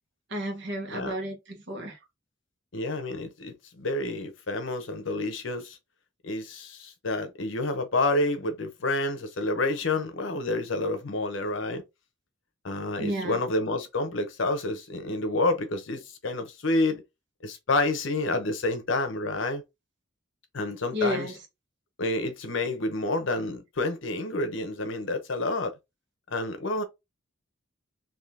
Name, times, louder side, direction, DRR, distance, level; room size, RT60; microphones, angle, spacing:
voice 1, 0.3-2.0 13.0-13.4 20.9-21.4, equal, 60° right, 1.1 m, -32 dB
voice 2, 2.7-5.8 6.2-11.8 12.6-17.0 17.4-19.6 20.5-21.3 22.0-25.7 26.3-26.8, left 2 dB, 70° left, 0.8 m, -29 dB
3.6 x 2.7 x 2.7 m
head